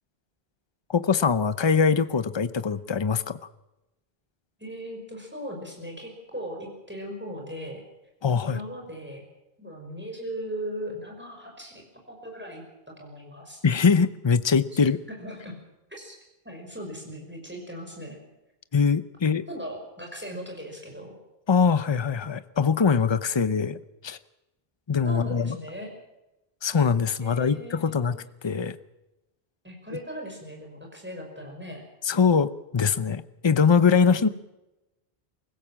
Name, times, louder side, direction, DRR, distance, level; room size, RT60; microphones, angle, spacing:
voice 1, 0.9-3.4 8.2-8.6 13.6-15.0 18.7-19.5 21.5-24.2 24.9-25.5 26.6-28.2 28.4-28.8 32.0-34.3, left 5 dB, 30° left, 14 dB, 0.7 m, -22 dB
voice 2, 4.6-7.8 8.4-9.2 9.6-13.6 15.2-15.5 15.9-16.2 16.4-18.2 19.5-21.2 25.0-25.9 27.2-28.1 29.6-31.8 34.2-34.3, equal, 10° right, 0 dB, 5.7 m, -38 dB
24.0 x 16.0 x 7.4 m, 0.96 s
omnidirectional pair, 1.0 m